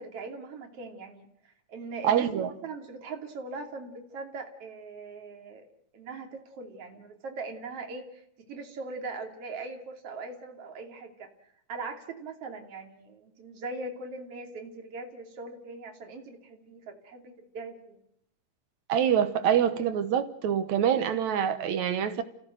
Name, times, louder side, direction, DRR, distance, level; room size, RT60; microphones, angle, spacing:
voice 1, 0.0-5.7 5.9-8.2 8.5-11.3 11.7-18.0, right 3 dB, 45° right, 3.6 m, -40 dB
voice 2, 2.0-2.5 18.9-22.2, right 9 dB, 70° right, 2.3 m, -25 dB
29.0 x 16.0 x 7.8 m
omnidirectional pair, 3.7 m